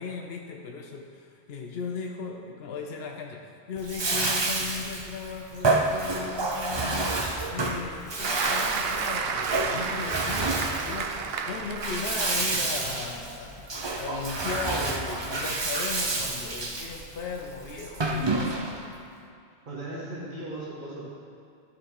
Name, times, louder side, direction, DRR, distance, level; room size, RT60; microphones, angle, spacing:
voice 1, 0.0-10.5 10.8-11.1 11.4-13.7 14.0-18.9, left 5 dB, 70° left, 2 dB, 0.8 m, -37 dB
Bathtub (filling or washing), 3.8-18.9, right 2 dB, 35° right, 0.5 m, -29 dB
Applause, 8.2-12.7 13.2-13.4, right 5 dB, 70° right, 0.8 m, -32 dB
voice 2, 9.6-10.7 11.2-11.3 19.6-21.1, right 1 dB, 50° right, -7 dB, 1.6 m, -38 dB
12.0 x 4.3 x 4.7 m, 2.4 s
omnidirectional pair, 1.1 m